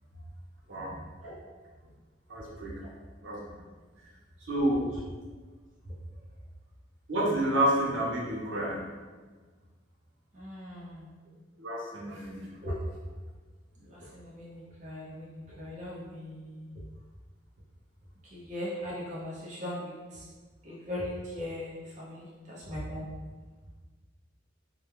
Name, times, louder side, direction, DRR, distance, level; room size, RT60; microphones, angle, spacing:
voice 1, 2.3-2.8 3.2-3.4 4.4-4.8 7.1-8.8 11.6-12.5, right 1 dB, 80° right, -4 dB, 0.7 m, -29 dB
voice 2, 10.3-11.1 12.6-12.7 13.9-16.7 18.3-20.2 20.6-23.1, left 1 dB, 40° right, -7 dB, 0.5 m, -39 dB
2.3 x 2.2 x 3.0 m, 1.4 s
head